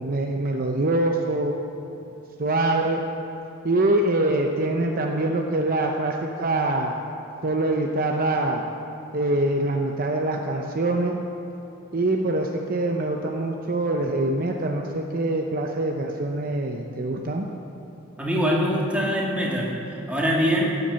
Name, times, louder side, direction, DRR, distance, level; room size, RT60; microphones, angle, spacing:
voice 1, 0.0-1.6 2.4-3.0 3.6-7.0 7.4-8.6 9.1-11.2 11.9-17.4, right 2 dB, 45° right, 2 dB, 0.7 m, -24 dB
voice 2, 18.2-19.7 20.1-20.7, equal, 5° right, -4 dB, 2.0 m, -23 dB
15.5 x 8.1 x 7.0 m, 2.9 s
head